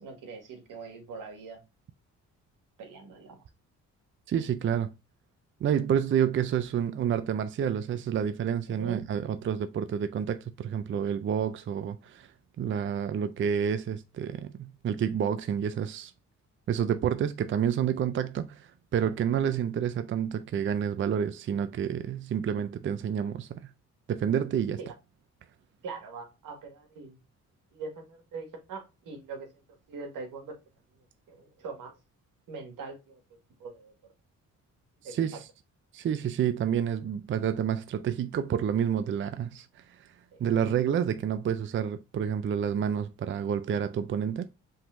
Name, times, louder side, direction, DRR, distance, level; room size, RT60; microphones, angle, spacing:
voice 1, 0.0-1.6 2.8-3.4 8.7-9.0 24.8-24.9 25.8-27.2 27.7-29.6 29.9-30.5 31.0-31.9 32.5-33.2 33.6-33.9 35.0-35.4 40.3-40.4, right 4 dB, 85° right, 1.8 m, -42 dB
voice 2, 4.3-4.9 5.6-12.3 12.6-16.1 16.7-23.6 24.1-24.8 35.0-35.4 35.9-40.1 40.4-44.5, right 8 dB, 40° right, 0.4 m, -29 dB
5.5 x 3.7 x 2.6 m
cardioid pair, 95°, 32 cm